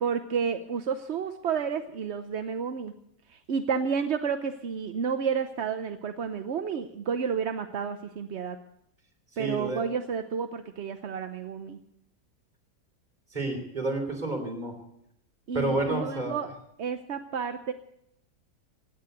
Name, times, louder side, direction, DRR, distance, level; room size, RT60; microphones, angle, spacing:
voice 1, 0.0-2.9 3.3-8.6 9.4-11.8 15.5-16.5 16.8-17.7, right 6 dB, 50° right, 8 dB, 0.8 m, -31 dB
voice 2, 9.4-9.9 13.3-14.7 15.5-16.3, right 2 dB, 25° right, 2 dB, 3.7 m, -30 dB
16.5 x 9.6 x 9.1 m, 0.76 s
omnidirectional pair, 1.9 m